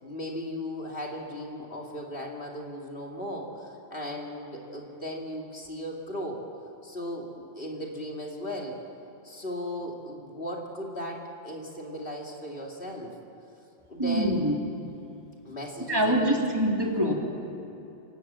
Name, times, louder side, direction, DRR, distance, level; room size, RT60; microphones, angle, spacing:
voice 1, 0.0-6.4 6.8-8.8 9.2-13.1 13.9-14.5 15.4-16.4, equal, 55° left, -1 dB, 3.1 m, -37 dB
voice 2, 14.0-14.5 15.9-17.1, equal, 20° right, -2 dB, 3.4 m, -24 dB
27.5 x 25.0 x 7.6 m, 2.9 s
omnidirectional pair, 1.2 m